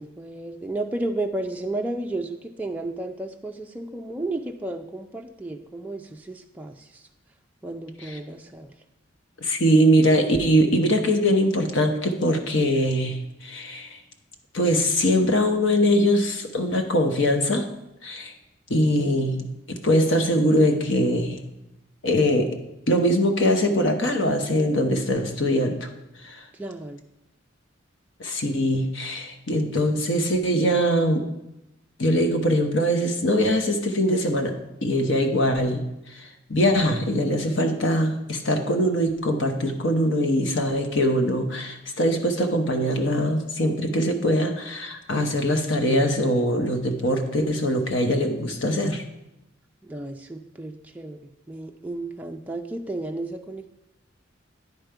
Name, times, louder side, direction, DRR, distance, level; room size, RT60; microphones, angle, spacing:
voice 1, 0.0-7.0 7.6-8.7 26.5-27.0 49.8-53.7, right 2 dB, 10° right, 2 dB, 0.3 m, -33 dB
voice 2, 9.4-14.0 14.5-17.7 18.0-18.3 18.7-21.4 22.0-22.5 22.9-25.9 26.2-26.4 28.2-31.2 32.0-34.6 34.8-35.8 36.1-49.0, equal, 65° left, 5 dB, 0.9 m, -22 dB
9.8 x 5.1 x 4.6 m, 0.89 s
head